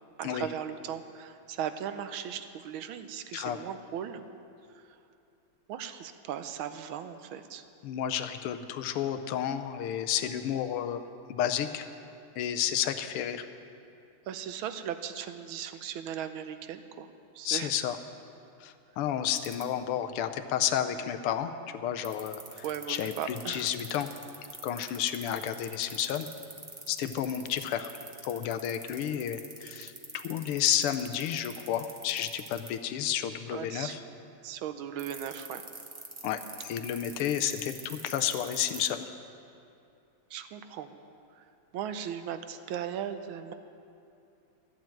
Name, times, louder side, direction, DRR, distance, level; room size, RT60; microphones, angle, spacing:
voice 1, 0.2-4.2 5.7-7.6 14.3-17.1 17.3-17.7 22.6-23.7 27.0-27.3 33.5-34.0 34.4-35.6 40.3-41.0 41.4-41.5 41.7-43.5, right 9 dB, 75° right, 9 dB, 1.4 m, -37 dB
voice 2, 7.8-11.0 11.3-11.8 12.4-13.5 17.4-18.0 18.6-24.1 24.6-26.3 26.9-27.9 28.2-34.0 36.2-39.1, left 10 dB, 90° left, 9 dB, 1.6 m, -31 dB
sound 1, 19.4-19.6 22.0-32.7 35.0-38.9, right 3 dB, 30° right, 0.8 m, -43 dB
14.0 x 7.3 x 9.1 m, 2.6 s
omnidirectional pair, 2.4 m